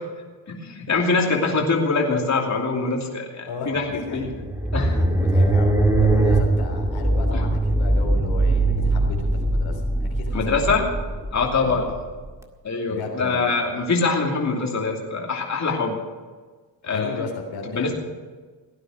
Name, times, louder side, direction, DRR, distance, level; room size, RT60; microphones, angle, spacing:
voice 1, 0.5-3.9 4.1-4.3 4.7-5.0 7.3-7.4 10.3-10.9 11.3-11.8 12.6-16.0 16.8-17.2 17.7-17.9, left 4 dB, 40° left, -1 dB, 2.9 m, -23 dB
voice 2, 3.5-4.3 4.8-9.8 10.1-10.8 11.6-11.9 12.9-13.6 16.9-17.9, left 4 dB, 85° left, 1 dB, 3.5 m, -34 dB
sound 1, 3.9-12.3, right 2 dB, 5° right, 1.9 m, -21 dB
17.0 x 9.7 x 6.5 m, 1.4 s
cardioid pair, 85°, 45 cm